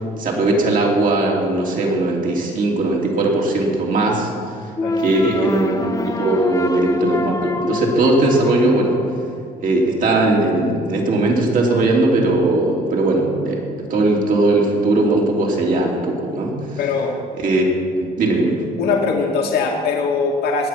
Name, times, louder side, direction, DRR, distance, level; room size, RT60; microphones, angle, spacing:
voice 1, 0.2-4.3 5.0-9.0 9.6-16.8 17.4-17.7 18.0-18.6, right 2 dB, 55° right, -1 dB, 3.2 m, -19 dB
sound 1, 4.8-9.8, left 3 dB, 20° left, 1.1 m, -25 dB
voice 2, 16.8-17.1 18.8-20.7, left 4 dB, 75° left, 0 dB, 2.1 m, -21 dB
20.0 x 8.1 x 6.1 m, 2.2 s
cardioid pair, 110°, 17 cm